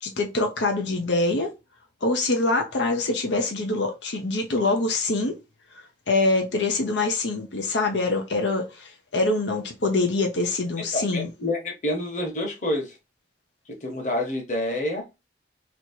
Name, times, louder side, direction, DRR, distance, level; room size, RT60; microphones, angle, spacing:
voice 1, 0.0-1.5 2.0-5.4 6.1-11.3, left 2 dB, 85° left, 0.8 m, -24 dB
voice 2, 10.8-13.0 13.8-15.1, left 1 dB, 40° left, 1.3 m, -28 dB
3.2 x 2.9 x 4.3 m
head